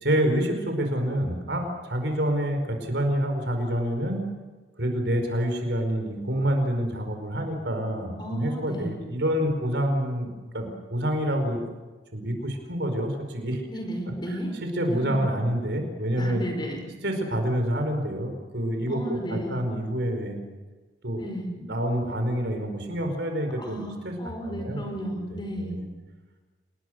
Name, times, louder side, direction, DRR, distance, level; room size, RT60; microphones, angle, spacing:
voice 1, 0.0-4.2 4.8-11.6 12.1-13.7 14.3-16.4 17.0-20.4 21.0-21.2 21.6-25.2 25.6-25.9, equal, 65° right, 5 dB, 5.1 m, -27 dB
voice 2, 8.2-9.0 13.7-14.5 14.9-15.2 16.2-16.8 18.9-19.6 21.2-21.5 23.6-25.8, equal, 25° left, 3 dB, 5.0 m, -33 dB
28.0 x 20.5 x 6.5 m, 1.3 s
head